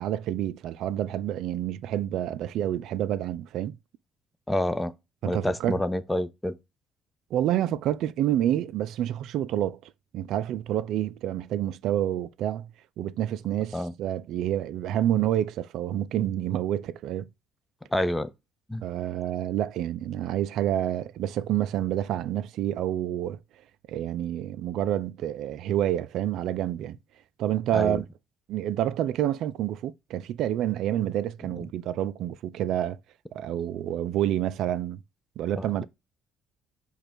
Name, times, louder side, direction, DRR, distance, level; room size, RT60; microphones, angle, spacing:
voice 1, 0.0-3.8 5.2-5.8 7.3-12.7 13.0-17.3 18.8-23.4 23.9-27.0 27.4-28.0 28.5-33.0 33.3-35.0 35.4-35.8, right 11 dB, 70° right, 0.3 m, -28 dB
voice 2, 4.5-4.9 5.2-6.5 13.7-13.9 17.9-18.3 18.7-18.8 27.7-28.0 35.6-35.8, left 1 dB, 10° left, 0.6 m, -28 dB
5.2 x 2.3 x 4.4 m
hypercardioid pair, 60°, 0 cm